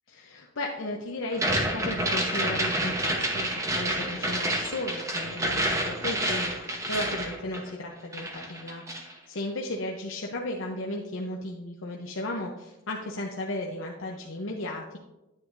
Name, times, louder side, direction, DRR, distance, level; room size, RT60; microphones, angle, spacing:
voice 1, 0.1-15.0, left 1 dB, 80° left, -1 dB, 0.8 m, -35 dB
sound 1, 1.3-9.1, right 1 dB, 15° right, 0.9 m, -29 dB
9.6 x 9.0 x 2.6 m, 1.0 s
head